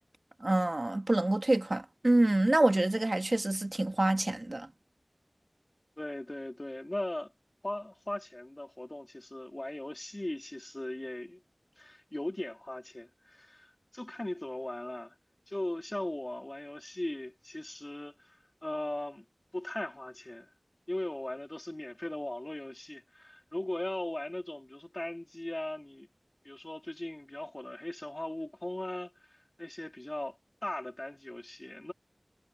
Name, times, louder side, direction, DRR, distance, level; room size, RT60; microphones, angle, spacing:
voice 1, 0.4-4.7, right 2 dB, 50° right, 1.8 m, -27 dB
voice 2, 6.0-7.3 7.6-11.4 11.8-15.1 15.5-19.3 19.5-20.5 20.9-26.1 26.4-31.9, left 1 dB, 35° left, 1.8 m, -38 dB
wide cardioid pair, 50°, 0 cm